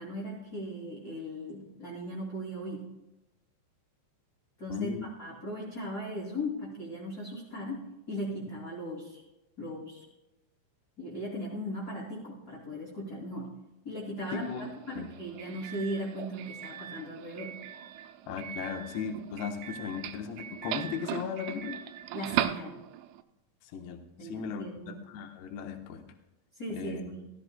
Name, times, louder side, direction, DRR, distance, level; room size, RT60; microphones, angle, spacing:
voice 1, 0.0-2.9 4.6-4.9 5.2-9.2 9.6-10.0 11.0-13.5 13.8-14.5 14.9-17.5 22.1-22.8 24.2-25.0 26.6-27.3, equal, 30° left, -6 dB, 2.1 m, -38 dB
voice 2, 4.7-5.1 14.3-14.7 15.0-15.1 18.3-21.8 23.6-26.0 26.7-27.1, left 6 dB, 70° left, 5 dB, 2.9 m, -37 dB
Doorbell, 14.2-23.2, right 12 dB, 90° right, 3.2 m, -38 dB
15.5 x 15.5 x 2.2 m, 0.93 s
omnidirectional pair, 5.4 m